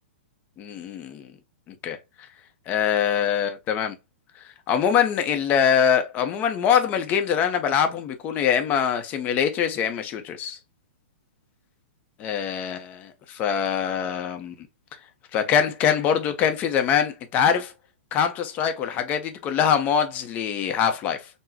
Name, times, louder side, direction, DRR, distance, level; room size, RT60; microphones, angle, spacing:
voice 1, 0.6-1.3 1.7-2.0 2.7-4.0 4.7-10.6 12.2-14.5 15.3-17.7 18.1-21.3, left 8 dB, 25° left, 0.5 m, -23 dB
3.8 x 2.0 x 2.7 m
hypercardioid pair, 145°, 6 cm